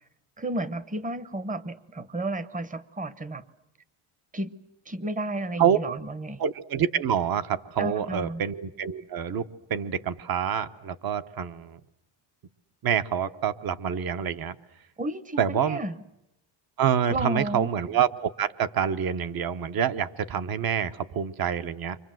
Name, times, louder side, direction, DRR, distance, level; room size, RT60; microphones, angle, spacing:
voice 1, 0.4-3.4 4.3-4.5 4.9-6.4 7.8-8.4 15.0-16.0 17.1-17.7, right 1 dB, 15° right, 15 dB, 0.9 m, -32 dB
voice 2, 6.4-11.8 12.8-14.5 15.4-15.8 16.8-22.0, right 8 dB, 45° right, 12 dB, 1.1 m, -27 dB
30.0 x 24.5 x 7.8 m, 0.87 s
cardioid pair, 145°, 50 cm